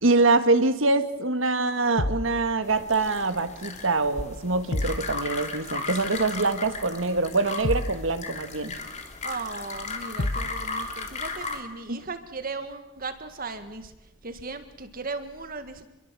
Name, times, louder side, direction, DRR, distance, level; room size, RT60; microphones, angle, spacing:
voice 1, 0.0-8.7 11.9-12.0, right 3 dB, 75° right, 10 dB, 1.7 m, -24 dB
sound 1, 2.0-2.3 4.7-5.1 7.6-8.0 10.2-10.6, left 1 dB, 75° left, 1.3 m, -28 dB
sound 2, 2.6-11.6, left 4 dB, 35° left, 3.0 m, -36 dB
voice 2, 9.2-13.9 14.2-15.9, right 3 dB, 45° right, 9 dB, 1.8 m, -37 dB
27.0 x 22.5 x 7.6 m, 0.97 s
head